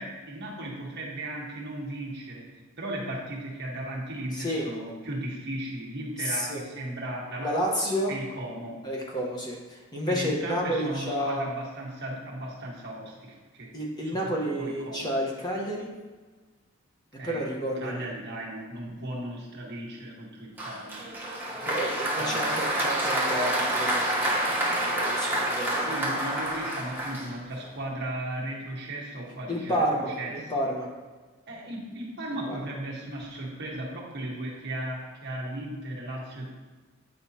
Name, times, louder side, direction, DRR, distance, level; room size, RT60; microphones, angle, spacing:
voice 1, 0.0-2.5 2.8-7.6 7.8-8.8 10.1-13.7 14.0-14.2 14.6-15.1 17.2-17.4 17.8-21.4 22.1-22.6 25.8-30.3 31.5-36.5, right 1 dB, 50° right, -3 dB, 1.4 m, -36 dB
voice 2, 4.3-4.7 6.2-6.6 7.4-8.1 8.8-11.5 13.7-15.9 17.2-18.0 21.6-25.9 29.5-30.9 32.5-32.6, equal, 20° left, -2 dB, 1.0 m, -30 dB
Applause, 20.6-27.7, right 1 dB, 10° right, 1.0 m, -28 dB
9.1 x 4.9 x 2.8 m, 1.3 s
head